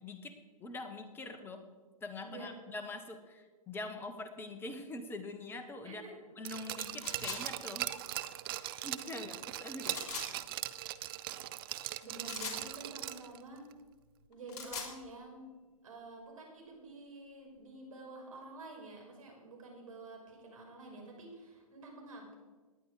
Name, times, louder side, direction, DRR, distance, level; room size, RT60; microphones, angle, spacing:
voice 1, 0.0-1.7 2.0-6.0 6.4-7.9 8.6-10.3, left 2 dB, 10° left, 8 dB, 1.3 m, -44 dB
voice 2, 2.2-2.5 5.8-6.1 8.7-8.9 12.0-13.7 14.3-15.5 15.8-22.3, right 2 dB, 65° right, 0 dB, 5.6 m, -49 dB
Glass, 6.4-13.4 13.7-13.8, right 14 dB, 40° right, 0.7 m, -40 dB
sound 1, 7.0-7.4 9.8-10.3 12.2-12.6 14.3-14.9, left 5 dB, 50° left, 3.5 m, -41 dB
18.5 x 10.5 x 5.0 m, 1.3 s
figure-of-eight pair, 120°, 19 cm